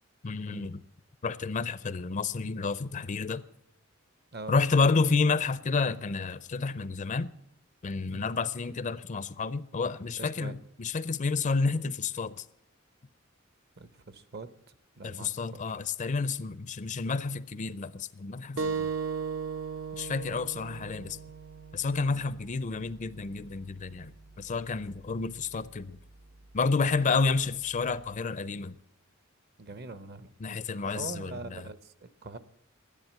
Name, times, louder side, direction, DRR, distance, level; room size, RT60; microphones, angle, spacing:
voice 1, 0.2-0.8 1.2-3.4 4.5-7.3 7.8-12.4 15.0-18.9 19.9-21.2 21.7-26.0 26.5-28.7 30.4-31.7, left 4 dB, 40° left, 0.5 m, -30 dB
voice 2, 10.2-10.5 13.8-14.5 15.0-15.7 18.5-18.7 22.1-22.3 27.0-27.2 29.6-30.3 30.8-32.4, right 3 dB, 50° right, 0.9 m, -43 dB
sound 1, 18.6-23.7, right 5 dB, 80° right, 1.4 m, -37 dB
12.0 x 10.5 x 7.2 m
head